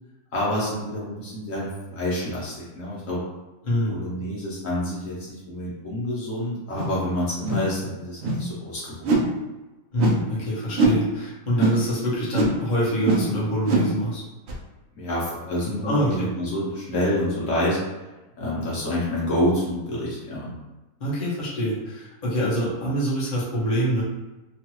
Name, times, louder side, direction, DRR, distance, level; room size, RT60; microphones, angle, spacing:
voice 1, 0.3-3.2 3.9-9.3 15.0-17.8 18.4-20.5, left 1 dB, 60° left, -7 dB, 1.1 m, -28 dB
voice 2, 3.6-3.9 9.9-14.2 15.8-16.3 21.0-24.0, equal, 35° left, -7 dB, 0.9 m, -25 dB
sound 1, 6.7-7.0 7.4-7.7 8.2-8.5 9.0-9.3 10.0-10.2 10.7-11.0 11.6-11.8 12.3-12.6 13.0-13.3 13.6-14.0 14.5-14.6, right 3 dB, 80° right, 0.6 m, -22 dB
3.0 x 2.3 x 3.0 m, 1.1 s
omnidirectional pair, 1.7 m